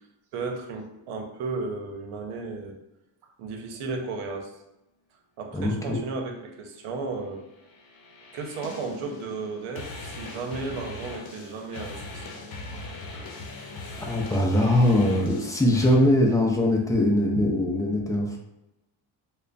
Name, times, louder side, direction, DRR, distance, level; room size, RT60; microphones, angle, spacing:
voice 1, 0.3-2.8 3.4-4.5 5.4-7.4 8.3-12.2, right 3 dB, 90° right, 3 dB, 0.8 m, -34 dB
voice 2, 5.5-6.0 12.9-13.3 14.0-18.4, left 1 dB, 10° left, 0 dB, 0.3 m, -22 dB
sound 1, 7.6-16.0, left 2 dB, 50° left, 0.8 m, -40 dB
3.2 x 2.2 x 3.8 m, 0.93 s
cardioid pair, 135°, 49 cm